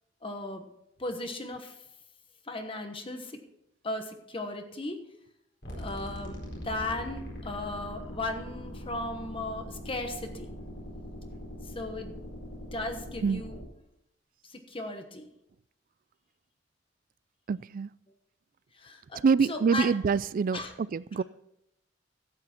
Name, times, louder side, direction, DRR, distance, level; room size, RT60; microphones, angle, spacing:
voice 1, 0.2-0.6 1.0-1.7 2.4-3.4 3.8-5.0 5.8-10.5 11.6-12.2 12.7-13.6 14.5-15.3 18.7-19.9 20.5-20.7 21.1-21.2, left 2 dB, 30° left, 1.1 m, -36 dB
sound 1, 5.6-13.6, equal, 70° left, 4.5 m, -41 dB
voice 2, 17.5-17.9 19.2-20.6 20.9-21.2, right 5 dB, 50° right, 0.3 m, -25 dB
13.0 x 8.8 x 4.4 m
head